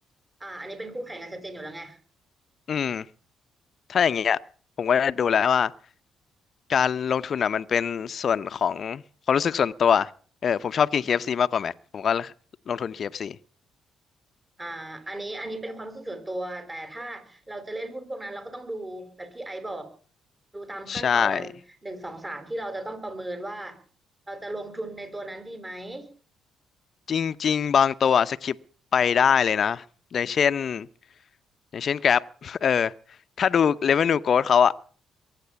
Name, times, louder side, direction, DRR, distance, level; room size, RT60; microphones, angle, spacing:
voice 1, 0.4-2.0 14.6-19.9 20.5-21.5 21.8-23.8 24.3-26.1, right 1 dB, 20° right, 4.6 m, -36 dB
voice 2, 2.7-3.1 3.9-4.4 4.8-5.7 6.7-9.0 9.3-10.1 10.4-12.3 12.7-13.4 20.9-21.4 27.1-28.6 28.9-29.8 30.1-30.9 31.7-32.9 33.4-34.7, left 7 dB, 55° left, 0.8 m, -23 dB
22.5 x 9.1 x 7.0 m
supercardioid pair, 70°, 0 cm